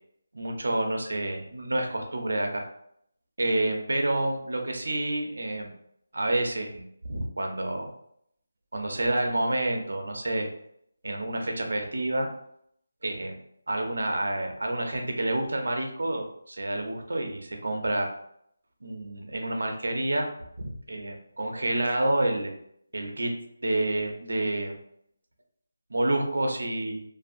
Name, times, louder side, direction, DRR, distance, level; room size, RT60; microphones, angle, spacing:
voice 1, 0.3-2.6 3.4-5.7 6.1-7.9 8.7-10.5 11.0-12.3 13.0-13.4 13.7-18.1 18.8-20.3 20.6-22.5 22.9-23.3 23.6-24.8 25.9-27.0, right 1 dB, 80° right, 3 dB, 0.6 m, -28 dB
2.6 x 2.3 x 2.4 m, 0.70 s
figure-of-eight pair, 175°, 0 cm